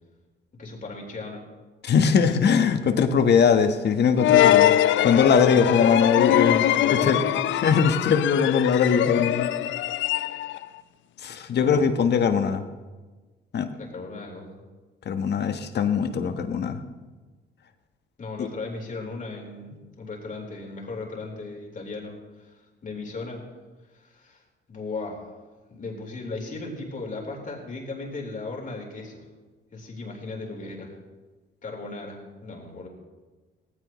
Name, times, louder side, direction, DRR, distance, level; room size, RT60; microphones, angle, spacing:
voice 1, 0.6-1.4 5.5-5.7 6.4-7.7 11.5-12.2 13.8-14.6 18.2-23.4 23.9-24.4 24.7-25.3 25.7-29.3 29.7-31.0 31.6-32.9, left 3 dB, 40° left, 0 dB, 3.9 m, -37 dB
voice 2, 1.8-7.2 7.5-9.5 11.2-12.6 13.5-13.7 15.0-16.8 18.4-18.5, left 6 dB, 60° left, 8 dB, 1.3 m, -21 dB
sound 1, 4.2-10.6, left 13 dB, 75° left, 0.5 m, -22 dB
18.0 x 16.0 x 3.1 m, 1.3 s
cardioid pair, 90°, 20 cm